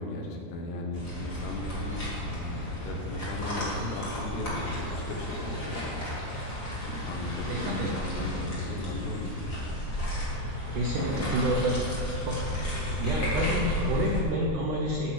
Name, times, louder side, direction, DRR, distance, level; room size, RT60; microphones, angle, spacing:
voice 1, 0.0-2.0 2.2-6.0 6.8-9.5, left 2 dB, 85° left, 1 dB, 3.3 m, -36 dB
sound 1, 0.9-14.2, left 1 dB, 25° left, 2.2 m, -33 dB
voice 2, 7.5-8.0 10.7-11.8 12.3-12.5 13.0-15.1, right 1 dB, 80° right, -2 dB, 1.8 m, -29 dB
11.0 x 6.1 x 6.6 m, 2.7 s
omnidirectional pair, 4.8 m